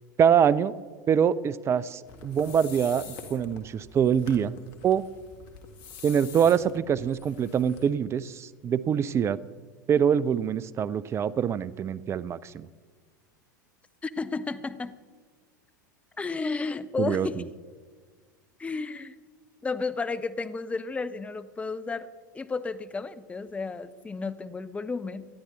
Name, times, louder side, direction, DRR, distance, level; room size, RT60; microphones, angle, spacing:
voice 1, 0.2-0.7 1.1-4.5 4.8-5.0 6.0-9.4 9.9-12.7 17.0-17.3, right 8 dB, 25° right, 18 dB, 0.5 m, -24 dB
sound 1, 2.1-7.9, left 5 dB, 50° left, 2.1 m, -46 dB
voice 2, 14.0-15.0 16.2-17.3 18.6-19.1 19.6-22.1 22.3-25.3, left 4 dB, 15° left, 13 dB, 0.7 m, -32 dB
19.0 x 13.0 x 4.0 m, 1.5 s
figure-of-eight pair, 85°, 10 cm